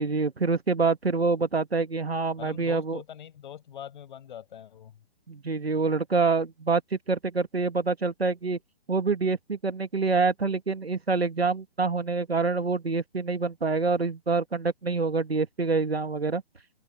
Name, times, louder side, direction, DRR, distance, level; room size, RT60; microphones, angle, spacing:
voice 1, 0.0-3.0 5.3-8.6 8.9-16.4, right 4 dB, 85° right, 2.3 m, -26 dB
voice 2, 2.4-5.0, left 10 dB, 55° left, 5.7 m, -43 dB
open air
figure-of-eight pair, 130°, 30 cm